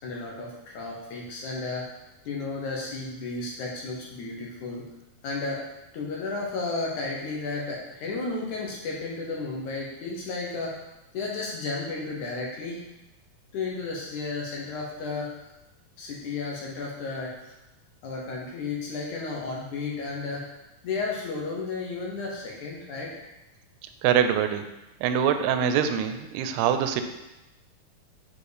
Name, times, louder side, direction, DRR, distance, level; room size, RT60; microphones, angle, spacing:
voice 1, 0.0-1.9 2.3-4.9 5.2-5.7 5.9-10.8 11.1-12.8 13.5-15.4 16.0-17.5 18.0-20.5 20.8-23.1, left 3 dB, 70° left, -2 dB, 2.0 m, -33 dB
voice 2, 24.0-24.7 25.0-27.0, right 8 dB, 85° right, 8 dB, 2.6 m, -24 dB
7.2 x 4.5 x 5.0 m, 1.0 s
omnidirectional pair, 4.5 m